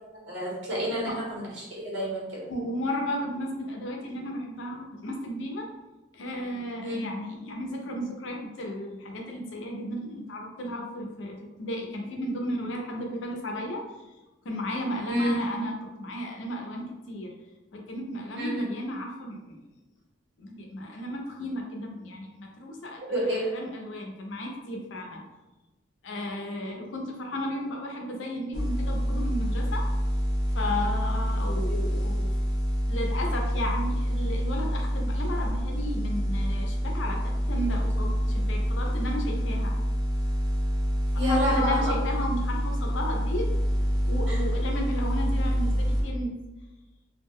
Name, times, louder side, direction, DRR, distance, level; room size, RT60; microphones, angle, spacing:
voice 1, 0.2-1.4 1.7-2.4 6.8-7.0 15.1-15.3 18.4-18.6 23.0-23.4 41.2-41.8 44.3-44.4, equal, 65° right, -5 dB, 1.0 m, -28 dB
voice 2, 2.5-5.7 6.1-13.8 14.4-17.3 17.7-19.6 20.4-25.2 26.0-29.9 30.5-32.3 32.9-39.7 41.1-43.5 44.1-46.4, left 1 dB, 75° left, 1 dB, 0.5 m, -34 dB
sound 1, 28.5-46.0, equal, 25° right, 0.5 m, -27 dB
2.2 x 2.0 x 3.6 m, 1.1 s
head